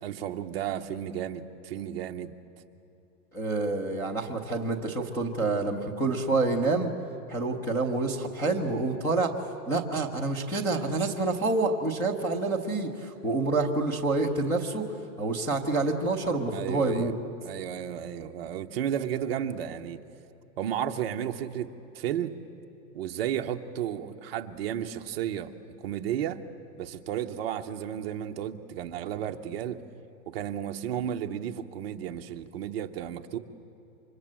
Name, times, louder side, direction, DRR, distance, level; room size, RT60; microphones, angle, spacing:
voice 1, 0.0-2.3 16.5-17.1 17.4-20.0 20.6-22.3 22.9-26.4 26.8-29.8 30.3-33.4, right 10 dB, 35° right, 6 dB, 0.9 m, -33 dB
voice 2, 3.3-6.9 7.3-9.3 9.7-14.8 15.2-17.1, right 3 dB, 5° left, -1 dB, 0.6 m, -27 dB
28.5 x 25.5 x 7.6 m, 2.9 s
hypercardioid pair, 165°, 49 cm